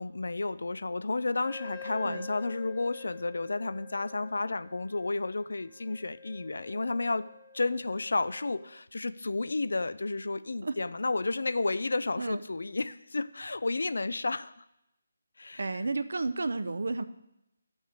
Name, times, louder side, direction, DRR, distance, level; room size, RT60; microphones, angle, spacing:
voice 1, 0.0-7.3 7.5-14.6 15.4-15.7, left 3 dB, 80° left, 15 dB, 0.5 m, -32 dB
Wind instrument woodwind instrument, 1.4-8.7, left 4 dB, 10° left, 1.1 m, -48 dB
voice 2, 15.6-17.0, right 3 dB, 75° right, 12 dB, 0.7 m, -32 dB
11.5 x 6.4 x 6.6 m, 0.86 s
hypercardioid pair, 170°, 0 cm